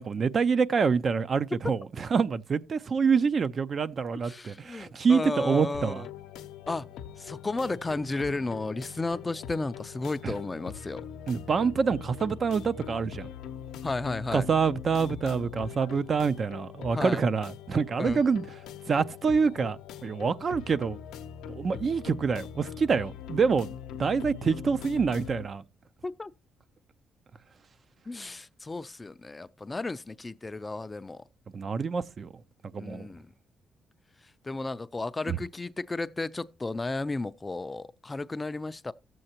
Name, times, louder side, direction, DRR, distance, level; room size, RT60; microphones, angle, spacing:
voice 1, 0.0-6.0 10.2-10.3 11.3-13.3 14.3-18.5 18.9-21.0 21.5-23.7 24.0-25.6 31.5-32.3 32.7-33.1 35.3-35.4, right 5 dB, 45° right, 0.5 m, -26 dB
voice 2, 4.2-6.1 6.7-6.9 7.2-11.0 13.8-14.5 16.9-17.3 18.0-18.2 26.0-26.3 28.1-31.2 32.8-33.3 34.4-38.9, left 3 dB, 20° left, 0.4 m, -33 dB
sound 1, 5.7-25.4, left 9 dB, 90° left, 0.6 m, -42 dB
14.0 x 7.7 x 2.8 m
cardioid pair, 90°, 0 cm